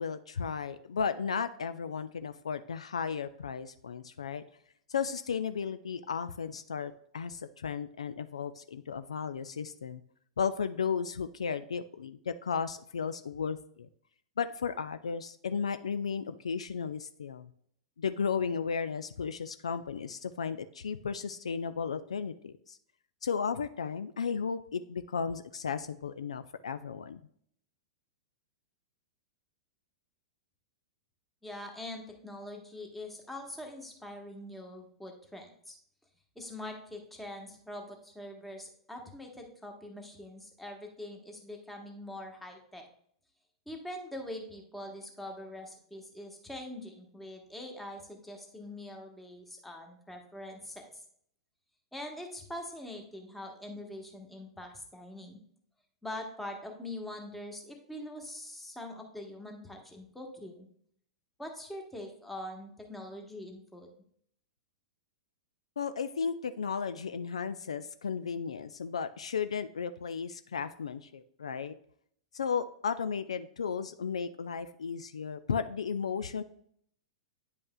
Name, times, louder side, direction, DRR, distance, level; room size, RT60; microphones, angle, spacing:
voice 1, 0.0-4.4 4.9-10.0 10.4-13.9 14.4-17.5 18.0-22.8 23.2-27.2 65.8-71.7 72.3-76.4, left 6 dB, 70° left, 12 dB, 0.3 m, -34 dB
voice 2, 31.4-35.8 36.3-42.8 43.7-51.0 51.9-55.4 56.0-60.7 61.4-63.9, left 1 dB, 5° left, 2 dB, 1.2 m, -43 dB
9.5 x 5.3 x 2.3 m, 0.66 s
figure-of-eight pair, 100°, 3 cm